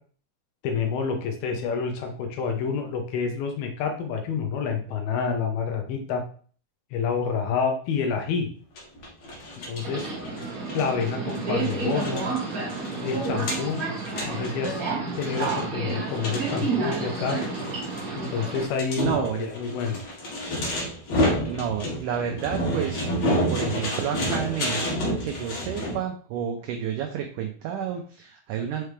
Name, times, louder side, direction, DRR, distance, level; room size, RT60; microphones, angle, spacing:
voice 1, 0.6-6.2 6.9-8.5 9.7-12.3 13.0-13.9 14.3-17.4 18.2-20.0, left 5 dB, 75° left, 4 dB, 2.8 m, -28 dB
sound 1, 8.8-26.0, equal, 55° left, 2.3 m, -30 dB
Subway metro underground, 9.7-18.6, right 4 dB, 55° right, 0.9 m, -30 dB
voice 2, 19.0-19.4 21.5-28.8, right 8 dB, 80° right, 3 dB, 1.9 m, -30 dB
6.6 x 4.7 x 3.3 m, 0.43 s
omnidirectional pair, 4.4 m